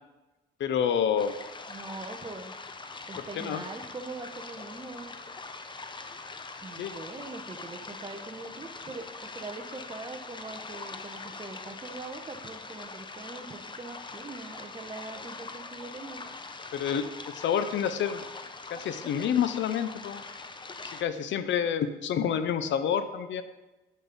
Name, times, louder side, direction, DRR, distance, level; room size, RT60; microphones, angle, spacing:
voice 1, 0.6-1.3 3.4-3.6 6.8-6.9 16.7-18.2 18.7-20.2 20.8-23.4, left 8 dB, 70° left, 11 dB, 0.7 m, -28 dB
sound 1, 1.2-21.0, left 3 dB, 25° left, 0.7 m, -43 dB
voice 2, 1.7-2.5 3.1-5.1 6.6-16.2, right 3 dB, 25° right, 6 dB, 1.0 m, -42 dB
8.5 x 6.3 x 5.3 m, 1.1 s
cardioid pair, 90°, 20 cm